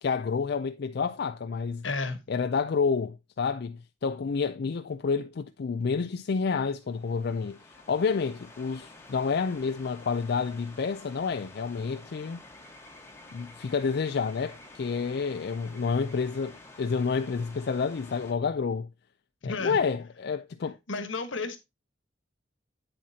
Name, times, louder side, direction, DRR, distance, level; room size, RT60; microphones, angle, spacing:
voice 1, 0.0-1.8 2.3-7.6 7.9-12.4 13.3-18.9 19.4-20.8, left 5 dB, 55° left, 0.4 m, -29 dB
voice 2, 1.8-2.2 19.4-19.8 20.9-21.6, left 3 dB, 80° left, 1.3 m, -32 dB
sound 1, 6.8-18.3, left 2 dB, 15° left, 1.3 m, -50 dB
7.9 x 7.4 x 2.8 m
head